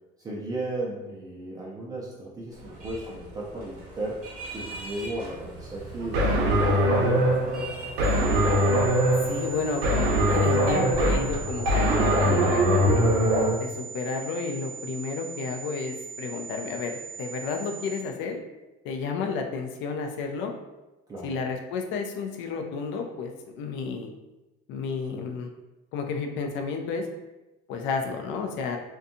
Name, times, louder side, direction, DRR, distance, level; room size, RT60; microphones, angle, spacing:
voice 1, 0.2-6.2 6.5-7.3 21.1-21.4, right 1 dB, 20° right, -5 dB, 0.3 m, -35 dB
sound 1, 2.5-10.2, right 2 dB, 40° right, 0.8 m, -42 dB
sound 2, 6.1-13.5, equal, 70° right, 0.7 m, -22 dB
sound 3, 8.0-18.0, right 6 dB, 45° left, 1.0 m, -40 dB
voice 2, 9.2-13.1 13.6-18.4 18.8-20.5 21.2-24.1 24.7-25.5 25.9-27.1 27.7-28.8, left 5 dB, 70° left, 3 dB, 0.4 m, -31 dB
2.6 x 2.2 x 2.5 m, 1.0 s
cardioid pair, 145°, 21 cm